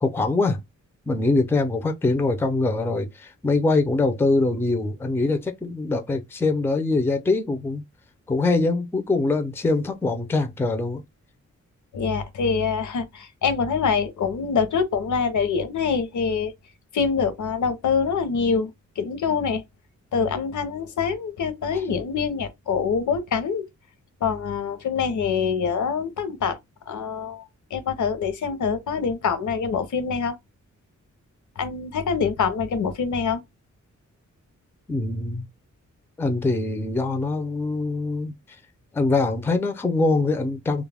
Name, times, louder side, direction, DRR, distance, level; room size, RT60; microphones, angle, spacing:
voice 1, 0.0-0.6 1.1-7.8 8.3-11.0 21.7-21.8 34.9-35.5 36.2-38.3 38.9-40.8, left 3 dB, 10° left, 0.4 m, -23 dB
voice 2, 11.9-16.5 16.9-18.7 19.0-19.6 20.1-23.6 24.2-26.6 26.9-30.4 31.6-33.4, left 6 dB, 70° left, 0.7 m, -25 dB
2.2 x 2.1 x 3.3 m
wide cardioid pair, 130°, 30 cm